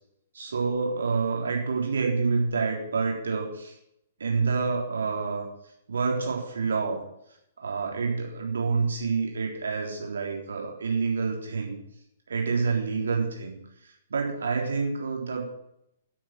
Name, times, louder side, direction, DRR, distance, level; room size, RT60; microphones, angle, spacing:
voice 1, 0.3-3.7 4.2-5.4 5.9-7.0 7.6-11.8 12.3-13.6 13.8-15.4, right 4 dB, 65° right, 1 dB, 3.6 m, -28 dB
9.2 x 8.8 x 8.8 m, 0.77 s
figure-of-eight pair, 115°, 0 cm